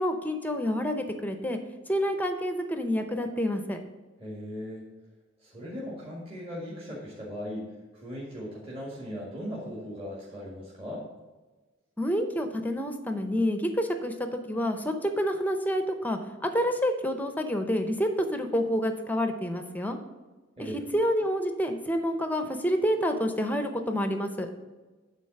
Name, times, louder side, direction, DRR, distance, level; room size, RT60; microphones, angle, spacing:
voice 1, 0.0-1.6 1.9-3.8 12.0-20.0 20.6-24.5, equal, 10° left, 6 dB, 0.7 m, -28 dB
voice 2, 4.2-4.9 5.4-7.7 7.9-11.0 20.6-20.8, equal, 30° right, -6 dB, 1.8 m, -38 dB
9.1 x 4.0 x 6.5 m, 1.3 s
head